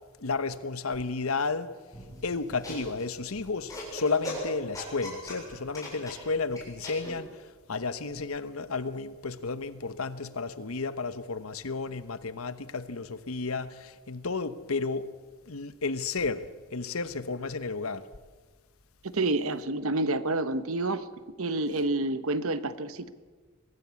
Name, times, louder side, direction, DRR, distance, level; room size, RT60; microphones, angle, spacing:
voice 1, 0.2-1.7 2.2-7.3 7.7-15.1 15.5-18.0, left 4 dB, 75° left, 1.0 m, -32 dB
sound 1, 1.9-7.1, left 1 dB, 15° left, 7.3 m, -40 dB
voice 2, 19.1-21.0 21.4-23.1, right 2 dB, 75° right, 1.1 m, -28 dB
23.0 x 15.5 x 8.3 m
head